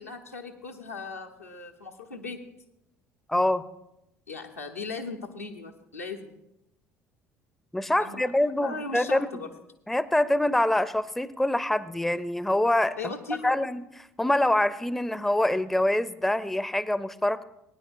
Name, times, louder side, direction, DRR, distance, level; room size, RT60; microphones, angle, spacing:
voice 1, 0.0-2.4 4.3-6.4 8.0-8.3 8.6-9.5 13.0-13.5, left 4 dB, 85° left, 1 dB, 0.8 m, -38 dB
voice 2, 3.3-3.7 7.7-9.4 9.9-13.1 13.4-13.8 14.2-17.4, left 1 dB, 5° left, 17 dB, 0.4 m, -25 dB
19.0 x 9.6 x 2.5 m, 0.85 s
figure-of-eight pair, 55°, 8 cm